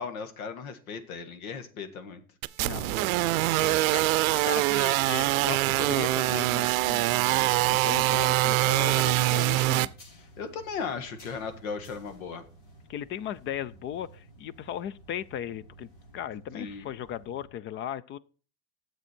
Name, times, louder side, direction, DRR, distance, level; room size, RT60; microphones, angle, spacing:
voice 1, 0.0-2.2 10.4-12.4 16.5-16.9, left 5 dB, 85° left, 1.7 m, -36 dB
sound 1, 2.4-9.9, right 19 dB, 75° right, 0.6 m, -24 dB
voice 2, 2.6-9.9 12.9-15.9 16.1-18.2, left 10 dB, 30° left, 0.4 m, -37 dB
sound 2, 3.9-17.5, right 2 dB, 65° left, 5.2 m, -52 dB
9.7 x 7.6 x 4.4 m
supercardioid pair, 120°, 41 cm